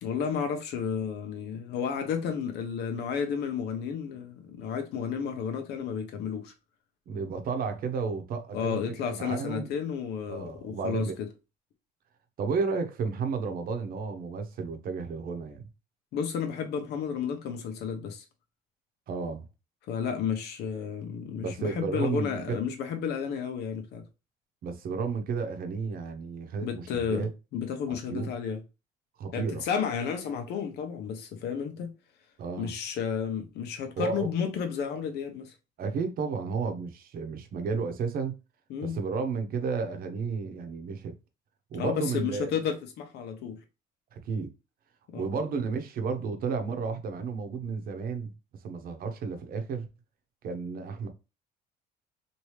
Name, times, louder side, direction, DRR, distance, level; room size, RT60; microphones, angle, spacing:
voice 1, 0.0-6.5 8.5-11.3 16.1-18.2 19.9-24.0 26.6-28.6 29.3-31.9 32.6-35.5 38.7-39.0 41.7-43.6 45.1-45.3, left 7 dB, 75° left, 0.9 m, -32 dB
voice 2, 7.1-8.8 9.1-9.7 10.3-11.2 12.4-15.7 19.1-19.4 21.4-22.6 24.6-27.3 28.1-28.3 29.2-29.6 32.4-32.7 34.0-34.3 35.8-38.3 38.8-41.1 41.7-42.5 44.1-44.5 45.1-48.3 48.6-49.9 50.4-51.1, right 5 dB, 60° right, 0.8 m, -32 dB
3.0 x 2.7 x 3.1 m
cardioid pair, 110°, 17 cm